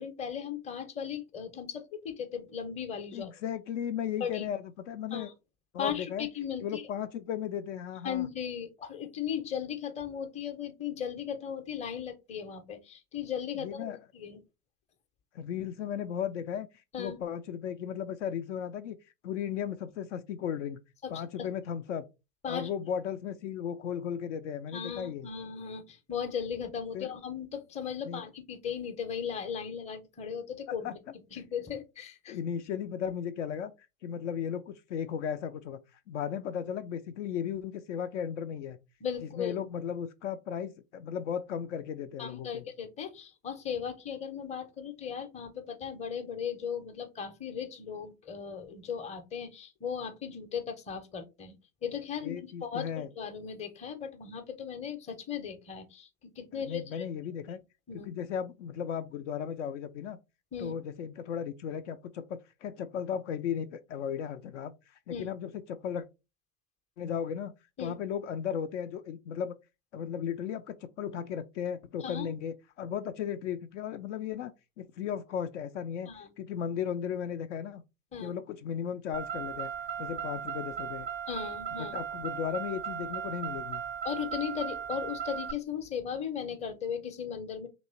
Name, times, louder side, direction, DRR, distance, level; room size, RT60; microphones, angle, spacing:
voice 1, 0.0-3.3 4.2-4.4 5.1-5.3 5.8-6.8 8.0-14.4 16.9-17.2 21.0-21.1 21.4-21.5 22.4-22.7 24.7-31.0 31.3-32.4 39.0-39.6 42.2-51.5 51.8-57.0 57.9-58.2 60.5-60.7 65.1-65.3 67.8-67.9 72.0-72.3 76.1-76.3 78.1-78.3 81.3-81.9 84.0-87.7, left 7 dB, 15° left, 0.7 m, -37 dB
voice 2, 3.1-5.3 5.7-6.3 6.6-8.3 13.6-14.0 15.3-19.0 19.2-20.8 21.1-22.0 22.4-25.3 26.9-27.1 28.0-28.2 30.8-30.9 31.3-31.4 32.3-38.8 39.2-42.7 52.2-53.1 56.5-57.6 57.9-60.2 60.6-66.0 67.0-67.5 67.8-69.5 69.9-74.5 74.8-76.1 76.4-77.8 78.2-79.7 80.0-81.1 81.7-83.8, left 8 dB, 55° left, 0.5 m, -36 dB
Car, 79.1-85.5, right 8 dB, 20° right, 0.5 m, -37 dB
3.0 x 3.0 x 4.2 m
hypercardioid pair, 100°, 43 cm